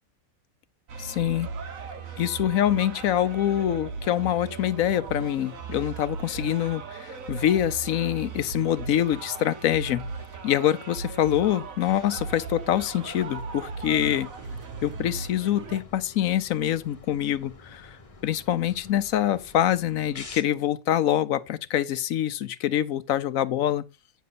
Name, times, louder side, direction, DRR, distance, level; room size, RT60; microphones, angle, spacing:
sound 1, 0.9-15.8, right 4 dB, 70° right, 1.6 m, -37 dB
voice 1, 1.0-1.5 2.2-10.1 10.4-14.3 14.8-23.8, left 11 dB, 75° left, 1.1 m, -25 dB
sound 2, 11.8-20.4, left 3 dB, 25° left, 1.0 m, -49 dB
9.3 x 6.5 x 4.0 m
omnidirectional pair, 1.5 m